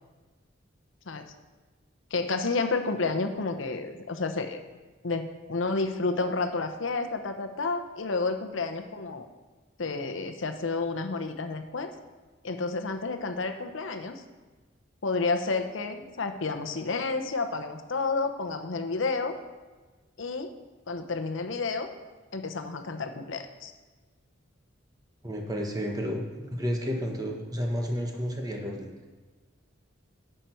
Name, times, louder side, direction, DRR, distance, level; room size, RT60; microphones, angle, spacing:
voice 1, 2.1-4.6 5.0-9.3 9.8-11.9 12.4-14.2 15.0-19.4 20.2-20.5 20.9-21.9 22.3-23.7, left 3 dB, 75° left, 7 dB, 0.8 m, -30 dB
voice 2, 25.2-28.9, equal, 20° right, 1 dB, 1.1 m, -31 dB
10.0 x 6.7 x 4.4 m, 1.3 s
head